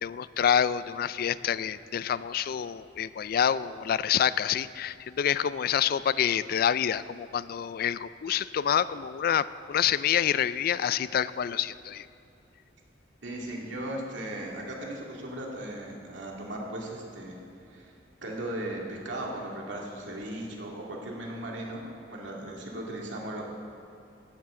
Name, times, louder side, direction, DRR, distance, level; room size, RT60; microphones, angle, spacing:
voice 1, 0.0-12.1, left 9 dB, 55° left, 16 dB, 0.3 m, -27 dB
voice 2, 13.2-17.4 17.7-17.9 18.2-23.5, right 1 dB, 90° right, -2 dB, 2.3 m, -37 dB
15.5 x 12.0 x 3.7 m, 2.7 s
head